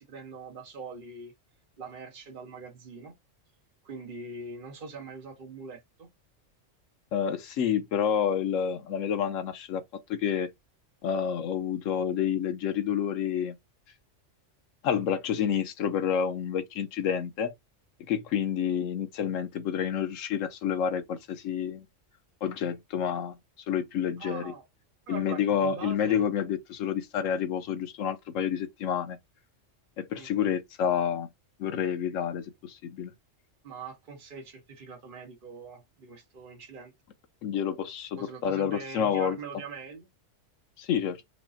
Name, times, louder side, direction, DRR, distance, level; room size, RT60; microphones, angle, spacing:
voice 1, 0.0-1.3 1.8-3.1 3.8-6.1 24.2-24.6 25.1-26.3 30.1-30.3 33.6-36.9 38.2-40.1, right 4 dB, 45° right, 1.2 m, -42 dB
voice 2, 7.1-9.8 10.1-10.5 11.0-13.6 14.8-17.5 18.1-21.9 22.4-23.4 23.7-24.5 25.1-29.2 30.0-31.3 31.6-33.1 37.4-39.4 40.8-41.2, left 8 dB, 85° left, 1.1 m, -29 dB
4.7 x 2.1 x 2.7 m
omnidirectional pair, 1.3 m